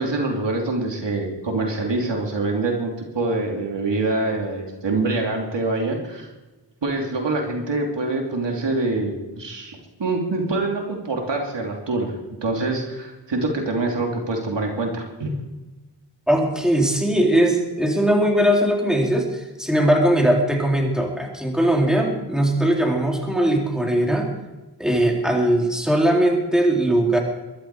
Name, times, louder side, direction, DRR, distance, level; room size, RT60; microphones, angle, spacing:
voice 1, 0.0-6.3 6.8-12.1 12.4-15.3, right 2 dB, 85° right, 0 dB, 3.2 m, -25 dB
voice 2, 16.3-24.4 24.8-27.2, right 1 dB, ahead, 0 dB, 3.7 m, -20 dB
22.5 x 12.0 x 4.9 m, 1.1 s
wide cardioid pair, 65°, 42 cm